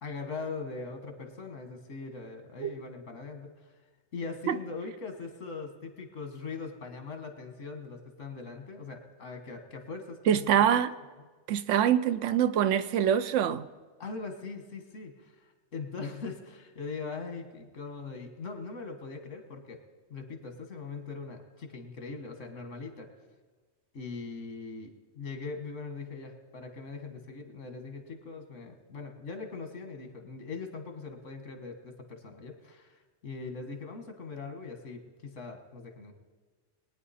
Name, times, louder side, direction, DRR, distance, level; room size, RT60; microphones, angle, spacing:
voice 1, 0.0-3.7 4.1-10.4 10.7-10.8 14.0-19.8 20.1-23.1 23.9-36.1, left 4 dB, 85° left, 6 dB, 1.8 m, -41 dB
voice 2, 10.3-10.9 11.5-13.7, right 9 dB, 80° right, 13 dB, 0.9 m, -24 dB
21.5 x 9.4 x 4.2 m, 1.4 s
omnidirectional pair, 1.2 m